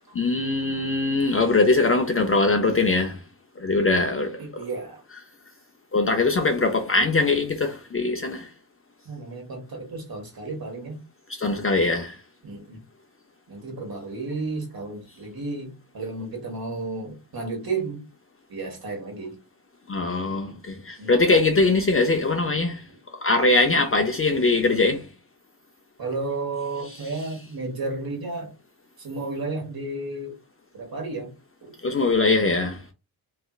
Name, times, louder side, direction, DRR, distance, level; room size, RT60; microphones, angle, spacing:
voice 1, 0.1-3.2 3.6-4.7 5.9-8.5 11.3-12.2 19.9-22.9 23.2-25.1 31.8-32.8, left 3 dB, 25° left, 0.6 m, -22 dB
voice 2, 4.4-5.0 9.0-11.0 12.4-12.8 13.5-18.1 18.5-19.4 21.0-21.1 26.0-28.5 29.0-30.4 30.7-31.3 31.6-31.7, right 3 dB, 45° right, 1.6 m, -32 dB
3.2 x 2.8 x 2.4 m
supercardioid pair, 45°, 50 cm